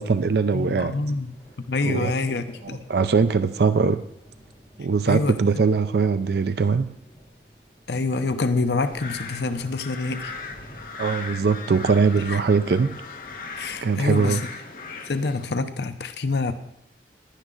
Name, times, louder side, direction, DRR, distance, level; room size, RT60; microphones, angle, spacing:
voice 1, 0.0-1.0 1.8-2.1 2.6-4.1 4.8-6.9 11.0-13.0 13.8-14.4, right 5 dB, 65° right, 0.4 m, -21 dB
voice 2, 0.5-1.3 1.7-2.8 5.1-5.4 7.9-10.3 12.3-12.4 13.6-14.4 15.0-16.5, left 3 dB, 70° left, 0.7 m, -26 dB
sound 1, 0.8-13.8, equal, 10° left, 4.5 m, -51 dB
sound 2, 8.9-15.5, left 4 dB, 50° left, 1.3 m, -38 dB
15.5 x 11.0 x 3.9 m
head